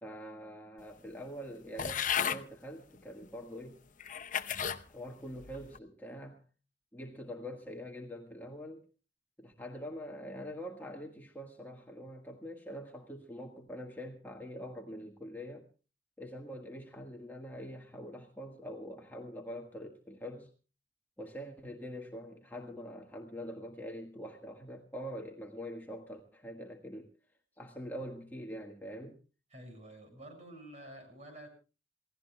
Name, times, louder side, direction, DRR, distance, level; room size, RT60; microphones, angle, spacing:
voice 1, 0.0-3.8 4.9-6.4 6.9-8.8 9.4-15.7 16.2-20.5 21.2-27.1 27.6-29.2, equal, 10° left, 1.5 m, -44 dB
sound 1, 1.8-2.4 3.2-3.3 4.0-4.8 5.4-5.8, left 8 dB, 45° left, 0.8 m, -34 dB
voice 2, 29.5-31.5, right 1 dB, 40° right, 6.7 m, -49 dB
28.0 x 17.0 x 2.3 m
head